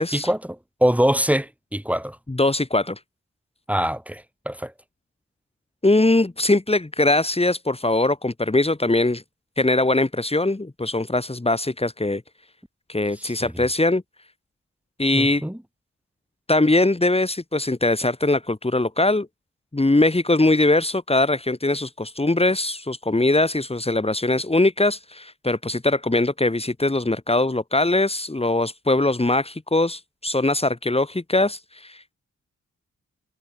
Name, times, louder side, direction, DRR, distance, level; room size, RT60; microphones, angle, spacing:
voice 1, 0.0-2.2 3.7-4.7 13.2-13.7 15.1-15.6, equal, 5° right, 6.9 m, -24 dB
voice 2, 2.3-3.0 5.8-9.2 9.6-12.2 12.9-14.0 15.0-15.4 16.5-19.3 19.7-32.1, left 2 dB, 20° left, 5.0 m, -21 dB
wide cardioid pair, 90°, 30 cm